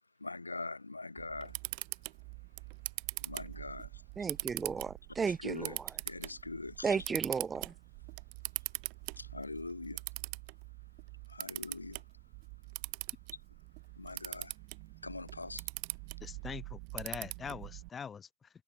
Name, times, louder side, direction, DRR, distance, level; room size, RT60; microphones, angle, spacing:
voice 1, 0.2-1.6 3.2-3.9 5.2-5.8 6.1-7.0 9.2-10.0 11.3-12.0 14.0-14.5 15.0-15.6, left 3 dB, 80° left, 4.5 m, -42 dB
Camera, 1.2-17.9, right 40 dB or more, 45° right, 3.2 m, -43 dB
voice 2, 4.2-6.0 6.8-7.7, right 5 dB, 15° right, 1.0 m, -34 dB
voice 3, 16.2-18.5, left 6 dB, 20° left, 5.1 m, -43 dB
figure-of-eight pair, 90°, 0 cm